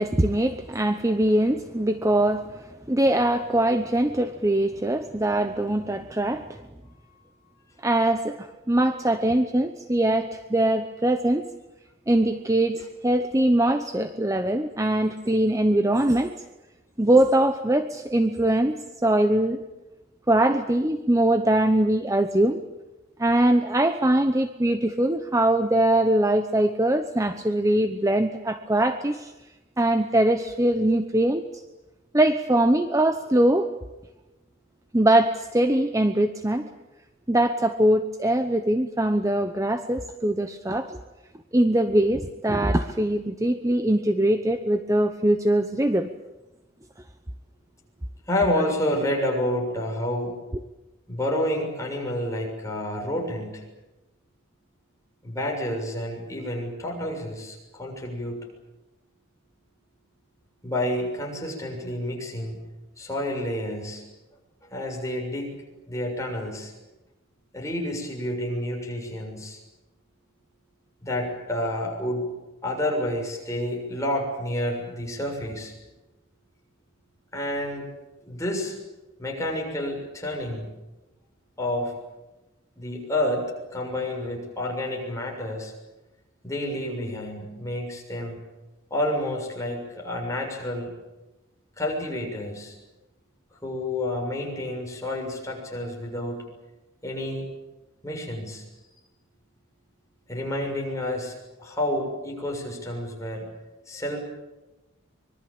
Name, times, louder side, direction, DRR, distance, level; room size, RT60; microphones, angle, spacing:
voice 1, 0.0-6.6 7.8-11.4 12.1-16.3 17.0-19.6 20.3-22.6 23.2-29.3 29.8-31.6 32.1-33.7 34.9-36.6 37.3-41.0 41.5-46.1, right 1 dB, 15° right, 8 dB, 0.8 m, -22 dB
voice 2, 48.3-50.3 51.1-53.6 55.2-58.4 60.6-62.6 63.0-64.0 64.7-65.5 65.9-66.7 67.5-69.6 71.0-72.2 72.6-75.7 77.3-77.9 78.2-78.8 79.2-80.7 81.6-81.9 82.8-85.7 86.4-88.4 88.9-90.9 91.8-92.7 93.6-96.4 97.0-97.4 98.0-98.6 100.3-103.5 103.9-104.2, left 1 dB, 15° left, 0 dB, 6.7 m, -29 dB
25.0 x 23.0 x 8.8 m, 1.0 s
head